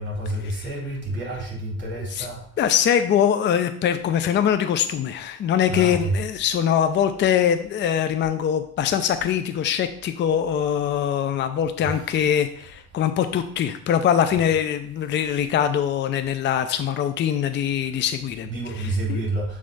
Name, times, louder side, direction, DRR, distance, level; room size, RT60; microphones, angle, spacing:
voice 1, 0.0-2.6 5.7-6.2 11.8-12.0 18.4-19.6, right 2 dB, 35° right, -4 dB, 3.0 m, -29 dB
voice 2, 2.6-18.5 18.8-19.2, left 9 dB, 35° left, 9 dB, 0.5 m, -23 dB
7.0 x 3.3 x 5.3 m, 0.62 s
cardioid pair, 110°, 31 cm